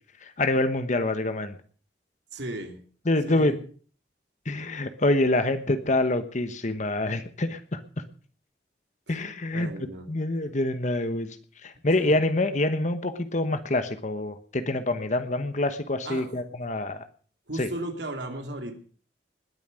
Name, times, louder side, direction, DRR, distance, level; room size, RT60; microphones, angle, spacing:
voice 1, 0.4-1.5 3.1-3.6 4.5-7.8 9.1-9.7 10.1-11.4 11.6-17.1 17.6-17.7, left 2 dB, 45° left, 10 dB, 1.2 m, -26 dB
voice 2, 2.3-2.8 3.2-3.6 9.1-9.2 9.5-10.1 12.0-12.1 16.0-16.3 17.5-18.8, right 1 dB, 90° right, 4 dB, 2.6 m, -35 dB
20.5 x 9.3 x 6.4 m, 0.43 s
head